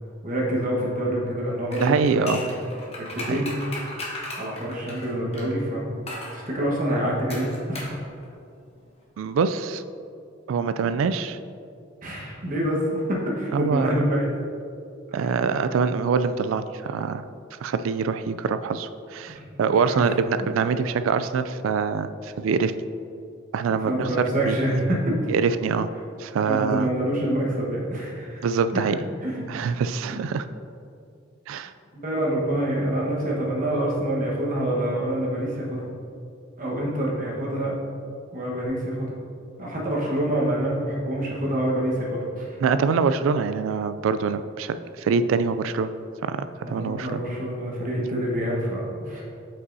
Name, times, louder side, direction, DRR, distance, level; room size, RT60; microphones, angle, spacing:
voice 1, 0.2-2.6 3.0-3.5 4.4-5.9 6.3-8.0 12.0-14.3 15.1-15.3 19.3-19.4 19.8-20.1 23.7-25.1 26.5-28.4 29.2-29.5 30.1-30.2 32.0-35.9 36.6-37.8 38.3-39.1 39.6-42.6 46.6-49.2, right 1 dB, 45° right, -4 dB, 1.3 m, -26 dB
sound 1, 1.7-5.5 6.1-6.4 7.3-8.0 8.2-8.3, left 2 dB, 30° left, 1.2 m, -36 dB
voice 2, 1.8-2.4 3.2-3.4 9.2-9.8 10.5-11.4 13.5-13.9 15.1-17.2 17.6-22.7 23.5-24.6 25.3-25.9 26.2-26.9 28.4-29.0 29.5-30.5 31.5-31.7 42.6-45.9 46.2-47.2, right 5 dB, 85° right, 11 dB, 0.3 m, -24 dB
8.0 x 5.5 x 2.7 m, 2.5 s
head